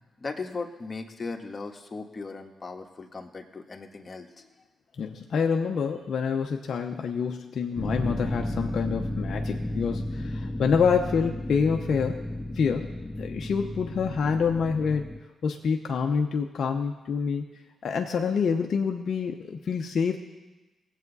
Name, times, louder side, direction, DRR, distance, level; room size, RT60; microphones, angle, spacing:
voice 1, 0.2-4.5, left 3 dB, 40° left, 4 dB, 1.5 m, -37 dB
voice 2, 5.0-12.2 12.5-12.9 13.2-15.1 15.4-17.4 17.8-20.2, left 6 dB, 65° left, 2 dB, 0.8 m, -27 dB
sound 1, 7.8-15.2, left 1 dB, 20° left, 1.3 m, -33 dB
19.0 x 8.2 x 4.1 m, 1.1 s
supercardioid pair, 50°, 0 cm